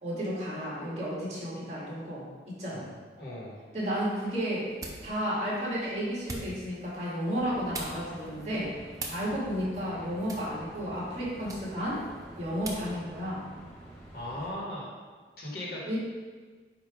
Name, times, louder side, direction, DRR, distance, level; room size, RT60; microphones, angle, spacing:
voice 1, 0.0-2.9 3.7-4.7 5.0-8.7 9.1-12.0 12.4-13.4 15.9-16.0, equal, 35° right, -6 dB, 2.1 m, -32 dB
voice 2, 3.2-3.5 14.1-14.9 15.4-16.0, left 1 dB, 55° left, -5 dB, 1.8 m, -38 dB
sound 1, 3.8-13.0, right 2 dB, 20° right, 0.7 m, -45 dB
sound 2, 7.3-14.5, right 1 dB, 15° left, 1.4 m, -48 dB
8.8 x 3.0 x 5.1 m, 1.5 s
head